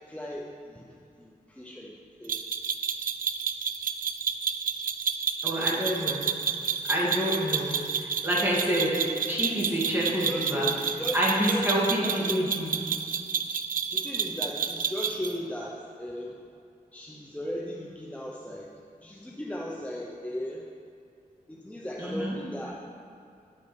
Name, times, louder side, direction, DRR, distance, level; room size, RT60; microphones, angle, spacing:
voice 1, 0.1-2.4 9.7-12.6 13.9-16.4 16.9-18.7 19.0-20.7 21.5-22.8, equal, 10° left, -2 dB, 0.7 m, -36 dB
sound 1, 2.3-15.4, right 7 dB, 65° right, 0.4 m, -30 dB
voice 2, 5.4-6.3 6.9-7.7 8.0-8.9 9.3-10.7 11.1-12.7 22.0-22.4, equal, 15° right, -6 dB, 2.4 m, -27 dB
10.0 x 6.0 x 4.4 m, 2.4 s
wide cardioid pair, 70°, 15 cm